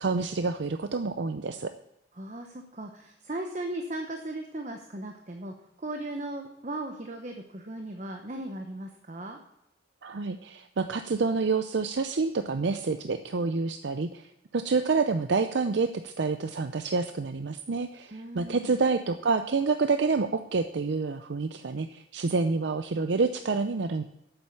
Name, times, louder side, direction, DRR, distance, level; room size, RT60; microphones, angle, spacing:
voice 1, 0.0-1.7 10.0-24.0, right 4 dB, 70° right, 9 dB, 0.5 m, -28 dB
voice 2, 2.2-9.4 18.1-18.8, right 1 dB, 40° right, 4 dB, 0.9 m, -37 dB
8.8 x 7.8 x 7.1 m, 0.85 s
head